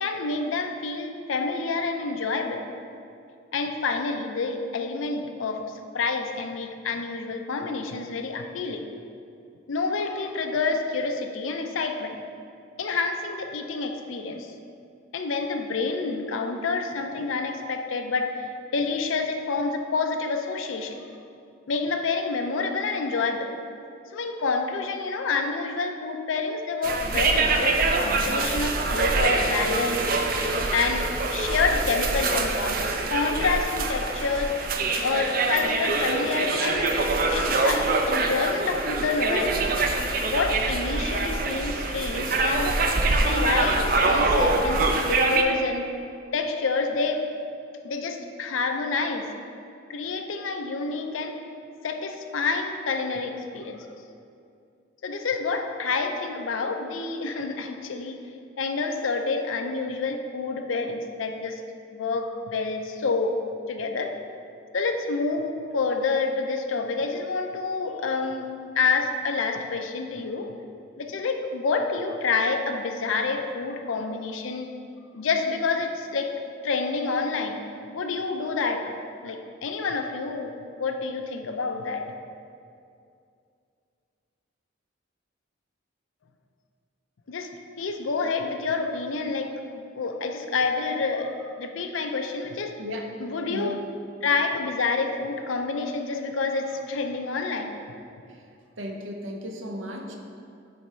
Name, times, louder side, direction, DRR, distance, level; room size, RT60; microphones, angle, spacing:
voice 1, 0.0-2.7 3.5-8.9 9.7-12.2 12.8-14.5 15.1-18.5 18.7-21.0 21.7-23.5 24.1-30.1 30.7-34.6 35.0-36.9 37.3-39.7 40.2-42.8 43.2-45.9 46.3-47.2 47.8-49.3 49.9-51.4 51.8-53.9 55.0-58.2 58.6-61.6 61.9-63.4 63.7-64.1 64.7-70.5 71.0-74.7 75.1-76.3 76.6-77.6 77.9-78.9 79.2-82.1 87.3-87.5 87.8-92.7 93.2-93.8 94.2-97.8, left 4 dB, 85° left, 5 dB, 0.5 m, -28 dB
sound 1, 26.8-45.4, right 3 dB, 45° right, 0.5 m, -24 dB
voice 2, 98.8-100.2, equal, 80° right, 2 dB, 0.8 m, -34 dB
9.3 x 3.4 x 4.3 m, 2.5 s
head